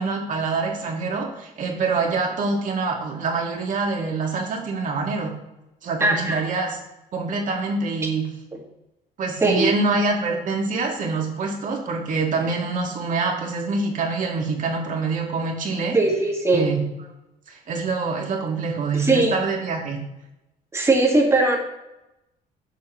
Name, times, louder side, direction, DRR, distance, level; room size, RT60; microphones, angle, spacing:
voice 1, 0.0-5.4 5.8-6.8 7.1-8.3 9.2-16.0 16.5-16.8 17.5-20.0, right 4 dB, 50° right, 0 dB, 1.8 m, -25 dB
voice 2, 6.0-6.4 9.4-9.7 15.9-16.7 18.9-19.4 20.7-21.6, right 2 dB, 15° right, 0 dB, 1.7 m, -19 dB
6.9 x 6.2 x 3.0 m, 0.93 s
cardioid pair, 110°, 17 cm